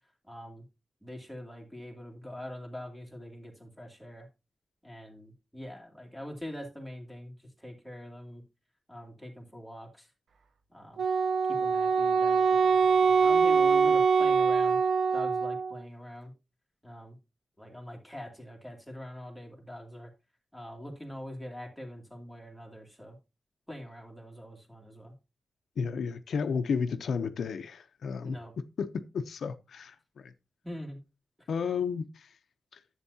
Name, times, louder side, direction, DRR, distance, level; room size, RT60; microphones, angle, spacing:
voice 1, 0.3-0.6 1.0-4.3 4.8-8.4 8.9-10.1 10.7-11.0 11.5-14.8 15.1-16.3 16.8-17.2 17.6-20.1 20.5-23.2 23.7-25.1 28.2-28.5 30.6-31.0 31.4-31.5, equal, 5° right, 2.4 m, -44 dB
Wind instrument woodwind instrument, 11.0-15.8, right 5 dB, 70° right, 0.8 m, -24 dB
voice 2, 25.8-28.4 28.8-30.3 31.5-32.3 32.7-32.8, left 6 dB, 80° left, 0.6 m, -32 dB
10.5 x 8.1 x 2.8 m
wide cardioid pair, 130°, 0 cm